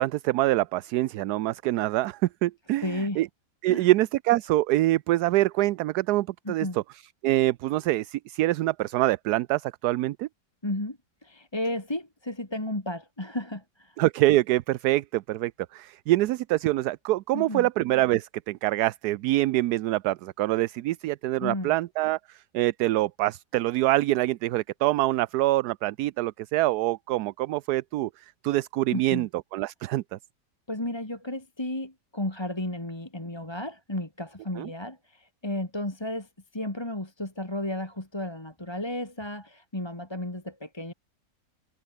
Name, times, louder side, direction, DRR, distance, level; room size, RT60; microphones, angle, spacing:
voice 1, 0.0-3.3 3.6-6.8 7.2-10.3 14.0-28.1 28.4-30.2 34.6-34.7, right 16 dB, 75° right, 1.1 m, -25 dB
voice 2, 2.8-3.2 3.7-3.9 6.4-6.8 10.6-13.9 17.3-17.7 21.4-21.7 28.9-29.3 30.7-36.3 36.5-40.9, left 1 dB, 15° left, 2.7 m, -33 dB
omnidirectional pair, 1.8 m